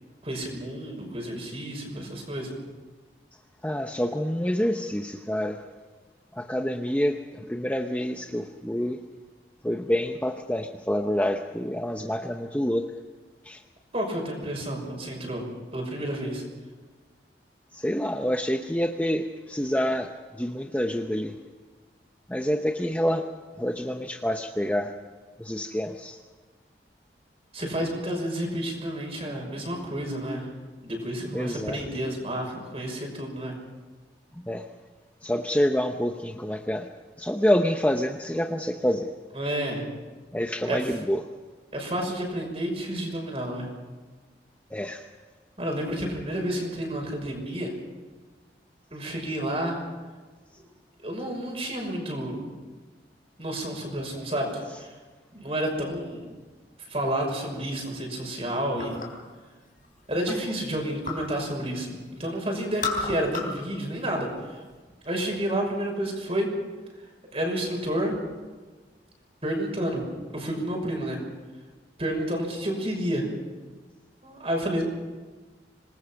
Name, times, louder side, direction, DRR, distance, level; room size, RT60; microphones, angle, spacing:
voice 1, 0.2-2.5 13.9-15.4 15.7-16.4 27.5-30.5 30.8-33.5 39.3-39.8 40.7-40.8 41.7-43.7 45.6-47.7 48.9-49.8 51.0-52.6 53.4-54.9 55.3-56.2 56.9-59.0 60.1-64.3 65.0-66.5 67.3-68.1 69.4-70.0 70.3-71.2 72.0-73.3 74.2-74.8, right 1 dB, 35° right, 1 dB, 6.0 m, -30 dB
voice 2, 3.6-5.6 6.3-9.0 9.6-12.9 13.4-13.6 17.7-21.4 22.3-23.3 23.6-24.9 25.4-26.2 31.3-31.8 34.3-34.6 35.2-36.9 37.2-39.1 40.3-41.2 44.7-45.0 60.3-60.4, equal, 10° left, 4 dB, 0.8 m, -27 dB
sound 1, 58.8-59.3 59.7-61.3 61.7-62.3 62.6-63.7 64.0-64.8, left 4 dB, 50° left, 3.8 m, -34 dB
26.5 x 19.5 x 6.0 m, 1.4 s
head